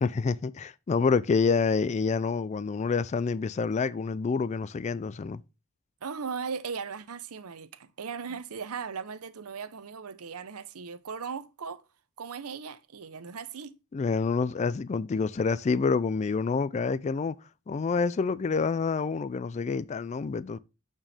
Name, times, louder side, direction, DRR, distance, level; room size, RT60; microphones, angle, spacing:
voice 1, 0.0-5.4 13.9-17.4 17.7-20.6, left 4 dB, 30° left, 0.3 m, -27 dB
voice 2, 6.0-11.8 12.2-13.8, right 5 dB, 85° right, 0.7 m, -38 dB
8.8 x 4.5 x 3.3 m
head